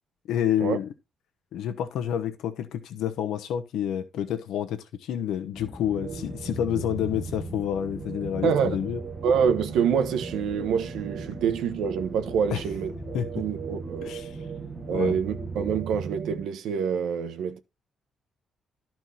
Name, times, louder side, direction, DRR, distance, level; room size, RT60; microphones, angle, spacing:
voice 1, 0.3-0.9 1.5-9.0 12.5-12.6 13.1-13.4 14.0-14.4 14.9-15.2, left 10 dB, 80° left, 1.0 m, -29 dB
sound 1, 5.5-15.8, left 2 dB, 10° left, 0.8 m, -42 dB
sound 2, 5.9-16.5, right 7 dB, 40° right, 0.6 m, -38 dB
voice 2, 8.4-8.8 9.2-14.1 14.9-17.6, right 7 dB, 85° right, 1.0 m, -26 dB
12.5 x 4.5 x 4.1 m
cardioid pair, 180°, 0 cm